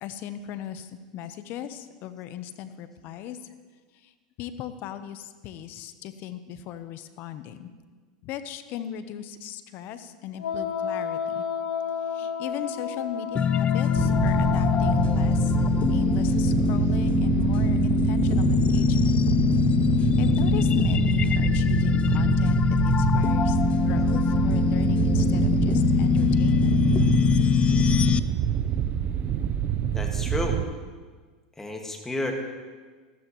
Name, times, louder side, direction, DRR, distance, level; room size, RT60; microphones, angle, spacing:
voice 1, 0.0-3.5 3.9-4.1 4.4-7.7 8.2-11.4 12.0-19.3 20.0-23.6 23.8-26.8, left 9 dB, 50° left, 11 dB, 0.8 m, -37 dB
Wind instrument woodwind instrument, 10.4-15.1, left 7 dB, 85° left, 1.5 m, -32 dB
sound 1, 13.4-28.2, left 8 dB, 25° left, 0.3 m, -23 dB
sound 2, 14.0-30.7, right 9 dB, 40° right, 0.7 m, -26 dB
voice 2, 29.9-30.6 31.6-32.3, left 2 dB, 10° left, 2 dB, 1.7 m, -31 dB
14.0 x 13.5 x 3.1 m, 1.4 s
hypercardioid pair, 100°, 4 cm